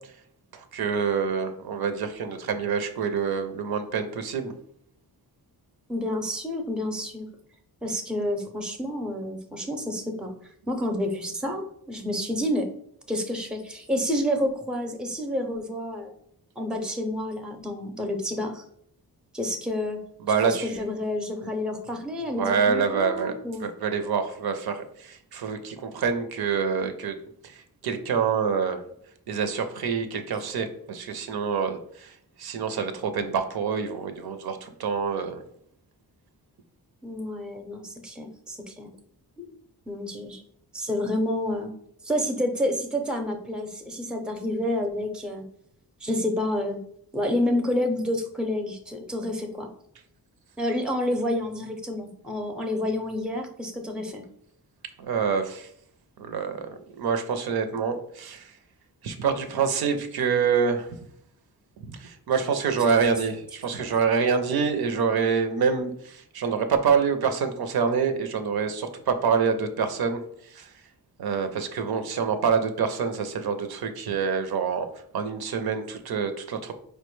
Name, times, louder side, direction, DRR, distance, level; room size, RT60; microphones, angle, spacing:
voice 1, 0.5-4.5 20.2-20.8 22.4-23.3 23.6-27.2 27.4-28.8 29.3-32.1 32.4-35.4 55.0-55.7 56.2-58.5 59.0-60.9 61.9-70.2 70.5-70.7 71.2-74.9 75.1-76.7, right 6 dB, 75° right, 8 dB, 0.5 m, -26 dB
voice 2, 5.9-7.3 7.8-10.3 10.7-12.7 13.1-16.1 16.6-18.6 19.3-20.0 20.4-23.6 37.0-38.9 39.4-39.5 39.9-40.4 40.7-41.7 42.0-45.4 46.0-46.8 47.1-49.7 50.6-54.2, left 1 dB, ahead, 4 dB, 0.5 m, -29 dB
4.5 x 2.1 x 3.0 m, 0.69 s
wide cardioid pair, 105°, 38 cm